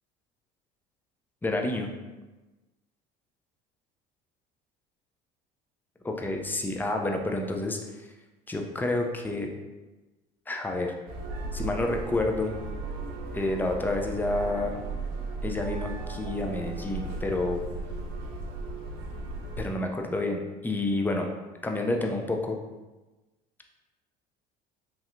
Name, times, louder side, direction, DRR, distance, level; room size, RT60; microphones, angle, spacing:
voice 1, 1.4-1.9 6.0-8.1 8.5-9.5 10.5-10.9 11.5-12.5 13.3-14.8 15.4-17.6 19.6-21.3 21.6-22.6, left 2 dB, 10° left, 3 dB, 0.4 m, -29 dB
sound 1, 11.1-19.7, right 3 dB, 85° right, 0.5 m, -36 dB
3.2 x 2.7 x 2.4 m, 1.2 s
supercardioid pair, 95°, 21 cm